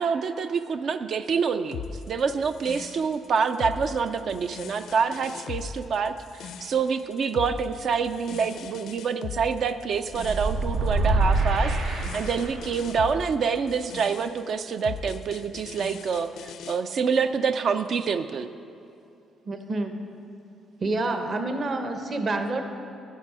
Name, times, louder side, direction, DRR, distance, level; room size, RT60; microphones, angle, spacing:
voice 1, 0.0-1.8 2.1-18.5, right 5 dB, 60° right, 9 dB, 0.3 m, -27 dB
sound 1, 1.7-16.8, left 6 dB, 80° left, 0.5 m, -39 dB
sound 2, 10.1-12.8, right 2 dB, 90° right, 1.0 m, -25 dB
voice 2, 19.5-19.9 20.8-22.6, right 2 dB, 45° right, 6 dB, 0.8 m, -28 dB
10.0 x 7.3 x 4.8 m, 2.7 s
cardioid pair, 90°, 0 cm